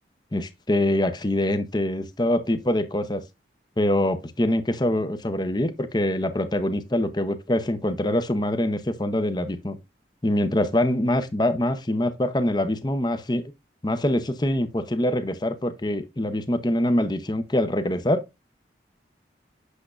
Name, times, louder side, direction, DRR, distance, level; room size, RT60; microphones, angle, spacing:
voice 1, 0.3-3.2 3.8-9.8 10.2-13.5 13.8-18.2, left 1 dB, 25° left, 0.7 m, -24 dB
8.2 x 6.7 x 2.4 m
head